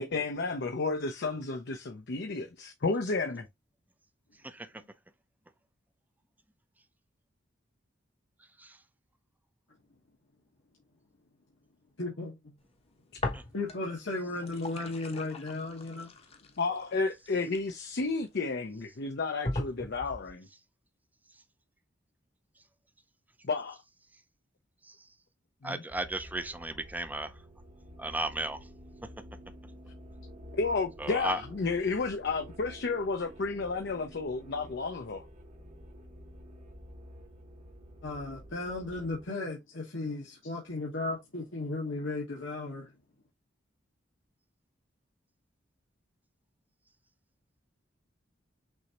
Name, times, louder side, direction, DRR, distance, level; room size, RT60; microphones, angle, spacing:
voice 1, 0.0-3.5 16.6-20.5 23.4-23.8 25.6-25.8 30.5-35.2, left 4 dB, 60° left, 0.6 m, -32 dB
voice 2, 12.0-12.4 13.5-16.1 38.0-42.9, left 2 dB, 80° left, 1.4 m, -35 dB
sound 1, 13.2-14.0 14.3-18.2 18.8-18.9 19.4-20.3, left 2 dB, 30° left, 0.9 m, -38 dB
voice 3, 25.6-27.3 28.0-28.6 31.0-31.4, right 1 dB, 10° right, 0.5 m, -34 dB
sound 2, 25.9-39.3, equal, 40° right, 1.1 m, -50 dB
6.1 x 2.7 x 2.9 m
head